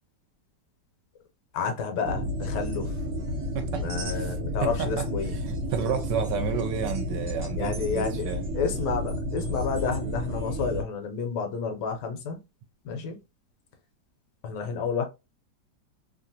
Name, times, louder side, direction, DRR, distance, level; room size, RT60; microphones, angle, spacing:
voice 1, 1.5-2.9 3.8-5.3 7.6-8.3 8.5-12.4 12.8-13.2 14.4-15.0, left 5 dB, 75° left, 1.2 m, -30 dB
sound 1, 2.0-10.8, equal, 55° right, 1.2 m, -31 dB
voice 2, 3.5-4.4 4.6-5.1 5.4-8.4, right 7 dB, 75° right, 1.2 m, -31 dB
3.1 x 2.4 x 2.6 m
omnidirectional pair, 2.0 m